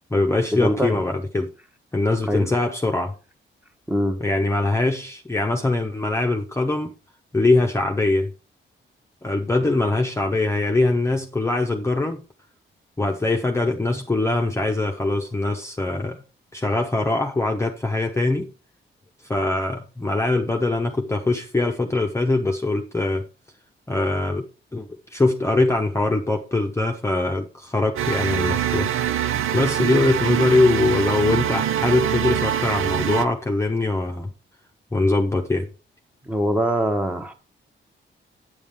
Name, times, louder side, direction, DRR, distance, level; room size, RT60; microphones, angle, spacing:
voice 1, 0.1-1.5 1.9-3.1 4.2-6.9 7.3-8.3 9.2-12.2 13.0-16.2 16.5-18.5 19.3-23.2 23.9-24.5 24.7-28.9 29.5-34.3 34.9-35.7, left 2 dB, 15° left, 0.8 m, -22 dB
voice 2, 0.6-1.0 2.3-2.5 3.9-4.2 36.2-37.3, equal, 5° right, 1.1 m, -22 dB
sound 1, 28.0-33.3, right 10 dB, 85° right, 0.7 m, -24 dB
8.5 x 7.1 x 3.5 m
wide cardioid pair, 125°, 21 cm